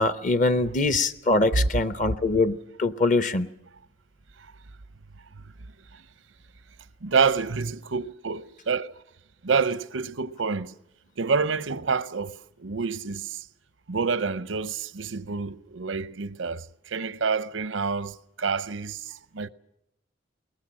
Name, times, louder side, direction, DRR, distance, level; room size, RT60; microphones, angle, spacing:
voice 1, 0.0-3.5, left 2 dB, 45° left, 0.7 m, -23 dB
voice 2, 5.2-5.5 5.9-6.0 7.0-8.9 9.4-10.7 11.2-13.5 13.9-19.5, right 5 dB, 90° right, 0.7 m, -28 dB
21.5 x 19.5 x 7.5 m
head